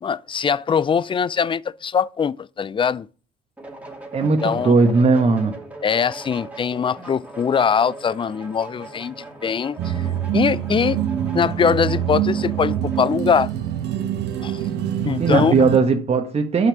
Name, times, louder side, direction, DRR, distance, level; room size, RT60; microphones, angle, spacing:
voice 1, 0.0-3.1 4.2-4.8 5.8-9.9 10.3-11.0 11.3-13.5 14.4-14.6 15.0-15.5, left 6 dB, 25° left, 0.5 m, -22 dB
sound 1, 3.6-13.2, right 2 dB, 5° right, 2.5 m, -40 dB
voice 2, 4.1-5.5 15.2-16.7, right 4 dB, 30° right, 1.4 m, -18 dB
sound 2, 9.8-15.8, right 10 dB, 60° right, 1.2 m, -25 dB
8.0 x 5.8 x 6.1 m
hypercardioid pair, 65°, 20 cm